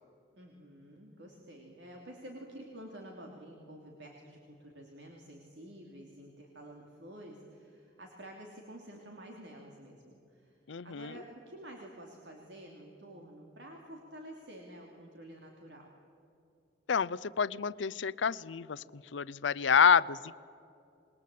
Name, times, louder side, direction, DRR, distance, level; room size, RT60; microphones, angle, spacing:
voice 1, 0.3-15.9, right 1 dB, 75° right, 1 dB, 3.0 m, -50 dB
voice 2, 10.7-11.1 16.9-20.4, left 6 dB, 85° left, 19 dB, 0.6 m, -28 dB
27.5 x 21.0 x 8.5 m, 2.7 s
head